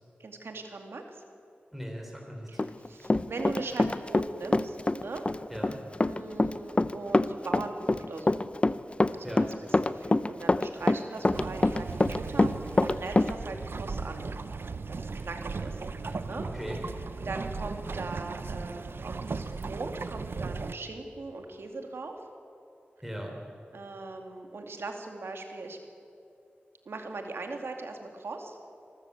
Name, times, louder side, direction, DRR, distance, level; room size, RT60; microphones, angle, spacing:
voice 1, 0.2-1.0 2.5-2.6 2.9-5.3 6.0-8.4 9.1-9.5 9.8-14.2 14.9-15.8 16.3-16.5 17.2-22.1 23.7-25.8 26.9-28.6, right 3 dB, 90° right, 4 dB, 2.4 m, -39 dB
voice 2, 1.7-2.6 5.5-5.8 9.2-9.5 16.0-16.8 23.0-23.4, equal, 5° right, 0 dB, 4.0 m, -39 dB
Run, 2.6-4.3 4.5-13.3, left 2 dB, 30° left, 0.6 m, -25 dB
sound 1, 11.3-20.7, right 4 dB, 75° right, 0.9 m, -37 dB
25.5 x 14.0 x 8.5 m, 2.7 s
wide cardioid pair, 70°, 4 cm